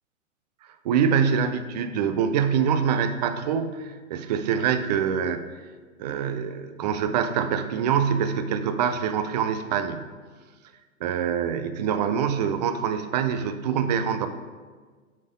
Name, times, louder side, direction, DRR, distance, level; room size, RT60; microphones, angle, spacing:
voice 1, 0.8-5.4 6.0-10.0 11.0-14.3, right 7 dB, 35° right, 10 dB, 0.4 m, -25 dB
7.4 x 4.2 x 5.2 m, 1.5 s
hypercardioid pair, 120°, 42 cm